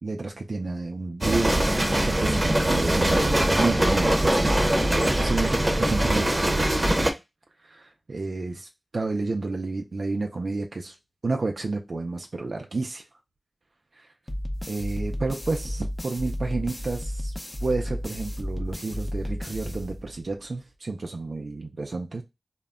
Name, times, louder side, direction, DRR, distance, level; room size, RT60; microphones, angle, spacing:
voice 1, 0.0-7.1 7.6-11.0 11.2-13.0 13.9-14.1 14.7-17.3 17.6-22.2, right 3 dB, 85° right, 0.3 m, -30 dB
sound 1, 1.2-7.1, right 1 dB, 35° right, 0.6 m, -22 dB
sound 2, 14.3-20.4, equal, 35° left, 0.5 m, -33 dB
2.1 x 2.1 x 3.5 m
wide cardioid pair, 50°, 0 cm